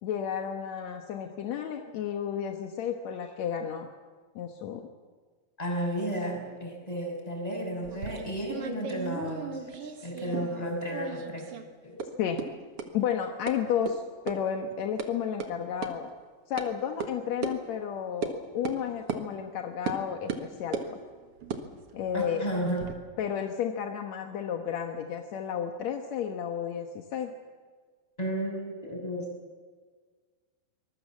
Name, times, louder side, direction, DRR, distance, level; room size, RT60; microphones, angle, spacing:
voice 1, 0.0-3.9 4.4-4.9 12.2-12.4 12.9-16.1 16.5-21.0 21.9-22.4 23.2-27.3, left 8 dB, 65° left, 4 dB, 1.9 m, -32 dB
voice 2, 5.6-9.7 10.0-11.5 11.8-12.0 22.1-22.9 28.2-29.3, equal, 10° left, 1 dB, 6.0 m, -33 dB
sound 1, 7.8-10.6 10.9-11.6 12.0-12.1 12.4-12.5 12.8-12.9 13.5-13.6 13.9-14.0 14.3-14.4 14.7-15.1 15.4-15.5 15.8-15.9 16.6-16.7 17.0-17.1 17.4-17.6 18.2-18.4 18.6-18.8 19.1-19.2 19.9-20.0 20.3-20.9 21.4-22.9, right 6 dB, 50° right, 2.0 m, -36 dB
25.0 x 21.0 x 7.3 m, 1.5 s
omnidirectional pair, 4.3 m